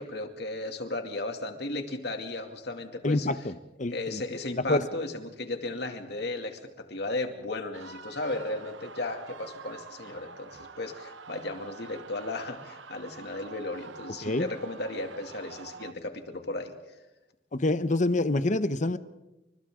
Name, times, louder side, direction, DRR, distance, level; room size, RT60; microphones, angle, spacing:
voice 1, 0.0-3.3 3.9-16.7, left 2 dB, 60° left, 4 dB, 2.5 m, -35 dB
voice 2, 3.0-4.2 4.6-4.9 14.2-14.5 17.5-19.0, left 2 dB, 40° left, 12 dB, 0.9 m, -27 dB
sound 1, 7.7-15.9, right 5 dB, 90° right, 1.0 m, -47 dB
29.5 x 26.5 x 3.8 m, 1.0 s
head